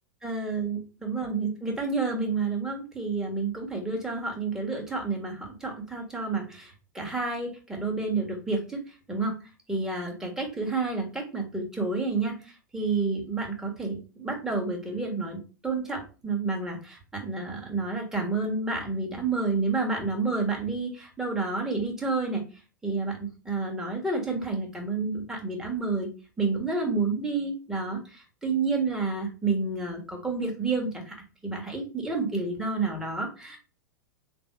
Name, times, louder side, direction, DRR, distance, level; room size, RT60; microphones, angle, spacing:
voice 1, 0.2-9.3 9.7-22.4 22.8-26.1 26.4-31.1 31.4-33.6, right 3 dB, 5° right, -1 dB, 1.4 m, -30 dB
3.8 x 2.7 x 4.5 m, 0.33 s
hypercardioid pair, 100°, 10 cm